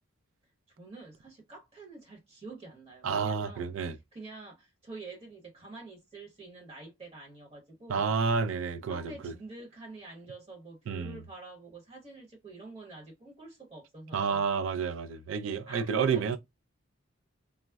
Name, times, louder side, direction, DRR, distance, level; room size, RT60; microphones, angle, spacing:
voice 1, 0.8-8.1 8.9-14.4 15.7-16.4, right 3 dB, 30° right, 0.9 m, -47 dB
voice 2, 3.0-4.0 7.9-9.3 10.9-11.2 14.1-16.4, right 5 dB, 70° right, 0.4 m, -30 dB
3.5 x 2.0 x 2.2 m
head